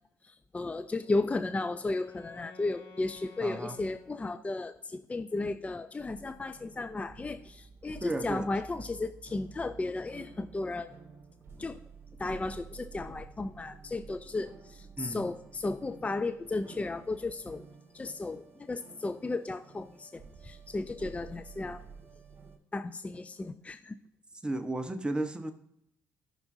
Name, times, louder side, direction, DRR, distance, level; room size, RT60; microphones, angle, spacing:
voice 1, 0.2-11.0 11.6-11.8 12.2-17.7 17.9-21.8 22.7-23.9, left 2 dB, 20° left, 0.5 m, -34 dB
Wind instrument woodwind instrument, 0.9-4.8, left 3 dB, 55° left, 3.8 m, -53 dB
voice 2, 3.4-3.8 8.0-8.5 15.0-15.2 24.4-25.5, right 2 dB, 15° right, 1.0 m, -33 dB
sound 1, 6.0-22.6, right 5 dB, 40° right, 2.8 m, -51 dB
14.0 x 6.0 x 2.7 m
supercardioid pair, 65°, 7 cm